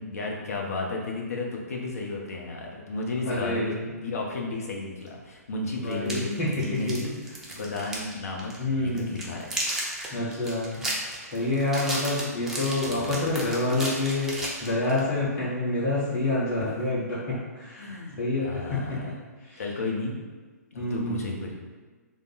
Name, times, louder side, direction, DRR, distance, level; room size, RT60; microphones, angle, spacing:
voice 1, 0.0-7.2 7.6-9.5 12.8-13.3 17.8-18.2 18.4-19.1 19.6-20.1 20.7-21.5, left 3 dB, 60° left, -1 dB, 0.8 m, -33 dB
voice 2, 3.2-3.8 5.8-7.0 8.6-9.3 10.1-10.8 11.3-14.3 14.6-19.0 19.5-19.6 20.8-21.3, left 2 dB, 35° left, -9 dB, 1.5 m, -28 dB
sound 1, 5.1-5.2 5.9-8.1 8.4-8.6 9.0-15.0, right 1 dB, 5° right, 0.5 m, -33 dB
3.5 x 2.1 x 3.9 m, 1.4 s
figure-of-eight pair, 125°, 9 cm